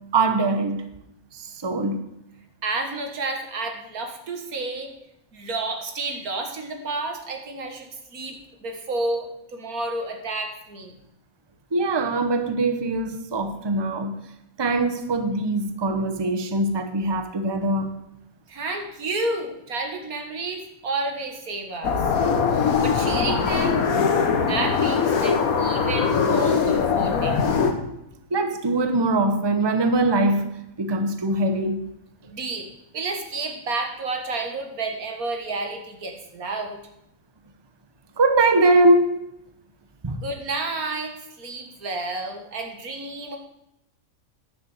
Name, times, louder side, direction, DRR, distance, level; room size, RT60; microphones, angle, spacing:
voice 1, 0.1-0.8 1.3-2.0 11.7-14.2 14.6-17.9 28.3-31.8 38.2-39.1 40.0-40.2, right 2 dB, 20° right, 8 dB, 0.9 m, -22 dB
voice 2, 2.6-4.9 5.3-10.9 18.5-22.0 22.8-23.9 24.5-27.4 32.3-32.7 32.9-36.8 40.2-43.4, right 3 dB, 85° right, 4 dB, 2.2 m, -30 dB
sound 1, 21.8-27.7, left 5 dB, 80° left, 1.6 m, -21 dB
10.5 x 6.6 x 7.9 m, 0.82 s
omnidirectional pair, 1.5 m